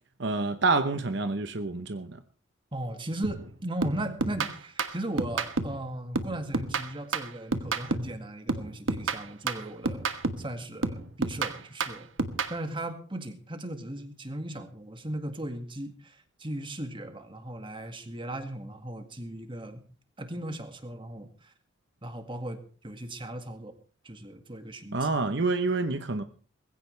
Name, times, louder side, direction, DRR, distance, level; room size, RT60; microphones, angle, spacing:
voice 1, 0.2-2.2 24.9-26.2, right 3 dB, 60° right, 1.0 m, -27 dB
voice 2, 2.7-10.1 10.4-12.1 12.5-19.8 20.2-21.5 22.0-23.7 24.0-25.1 26.1-26.2, right 1 dB, 25° right, 2.0 m, -37 dB
sound 1, 3.2-3.5 3.8-5.8 6.1-8.2 8.5-10.5 10.8-12.6, right 3 dB, 90° right, 1.4 m, -31 dB
20.5 x 16.0 x 3.4 m
head